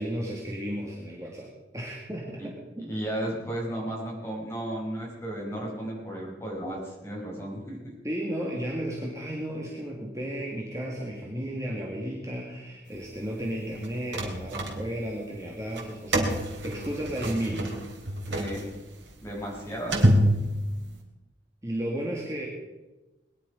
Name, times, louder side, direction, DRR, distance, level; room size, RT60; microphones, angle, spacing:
voice 1, 0.0-2.8 8.0-17.8 21.6-22.5, right 1 dB, 15° right, -3 dB, 2.1 m, -33 dB
voice 2, 2.8-7.9 18.3-18.7 19.2-20.1, right 1 dB, 15° left, -3 dB, 5.3 m, -34 dB
sound 1, 13.7-15.2 15.7-21.0, equal, 80° right, 3.1 m, -27 dB
21.0 x 11.0 x 5.2 m, 1.1 s
head